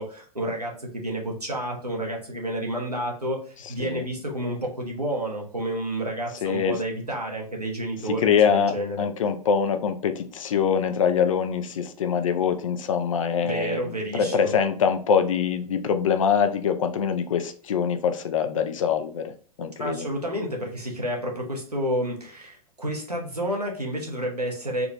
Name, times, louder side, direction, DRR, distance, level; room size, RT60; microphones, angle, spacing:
voice 1, 0.0-9.0 13.4-14.5 19.8-24.9, right 1 dB, 90° right, 0 dB, 1.1 m, -30 dB
voice 2, 6.4-6.8 8.0-20.1, left 7 dB, 60° left, 9 dB, 0.5 m, -24 dB
3.7 x 2.4 x 3.0 m, 0.43 s
figure-of-eight pair, 100°, 19 cm